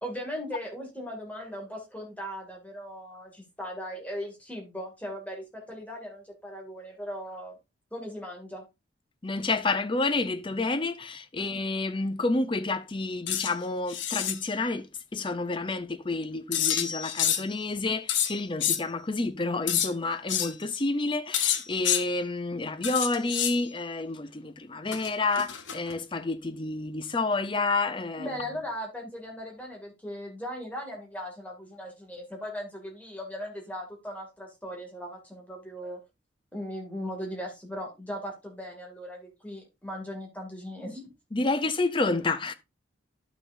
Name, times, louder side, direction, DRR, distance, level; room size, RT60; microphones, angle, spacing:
voice 1, 0.0-7.6 7.9-8.6 28.2-36.0 36.5-41.1, equal, 10° left, 2.3 m, -38 dB
voice 2, 9.2-14.9 15.1-28.3 41.3-42.5, left 3 dB, 25° left, 0.6 m, -29 dB
sound 1, 13.3-13.5 13.9-14.4 16.5-17.5 18.1-18.8 19.7-19.9 20.3-20.5 21.3-22.0 22.8-23.6 24.9-26.0, left 10 dB, 80° left, 1.0 m, -28 dB
11.5 x 6.2 x 2.6 m
head